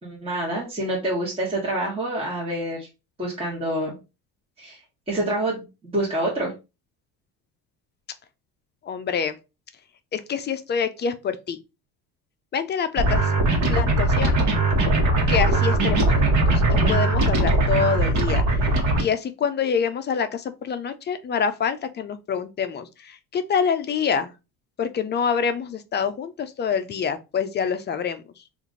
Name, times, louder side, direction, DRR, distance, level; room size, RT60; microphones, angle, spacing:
voice 1, 0.0-2.9 3.2-3.9 4.6-4.8 5.1-5.6 5.9-6.5, right 1 dB, 15° right, 1.3 m, -27 dB
voice 2, 8.8-9.4 10.1-11.6 12.5-13.3 13.7-14.4 15.3-18.6 19.0-24.3 24.8-28.2, left 6 dB, 30° left, 0.4 m, -26 dB
sound 1, 13.0-19.0, right 2 dB, 55° right, 1.2 m, -20 dB
3.0 x 2.5 x 3.7 m
cardioid pair, 105°, 35 cm